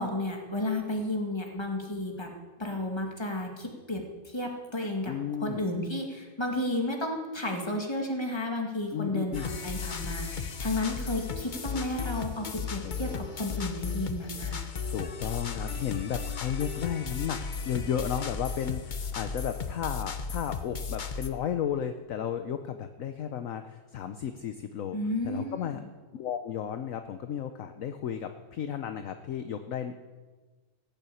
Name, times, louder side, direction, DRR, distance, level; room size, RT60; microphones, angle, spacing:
voice 1, 0.0-2.3 2.6-5.1 5.4-14.7 24.9-25.9, left 1 dB, 15° left, 2 dB, 2.1 m, -32 dB
voice 2, 5.1-5.7 8.9-9.5 12.8-13.2 14.9-17.4 17.7-25.0 25.2-25.8 26.1-30.0, left 9 dB, 60° left, 8 dB, 1.0 m, -33 dB
sound 1, 9.3-21.3, left 5 dB, 40° left, 0.8 m, -35 dB
17.5 x 7.1 x 8.5 m, 1.3 s
omnidirectional pair, 1.7 m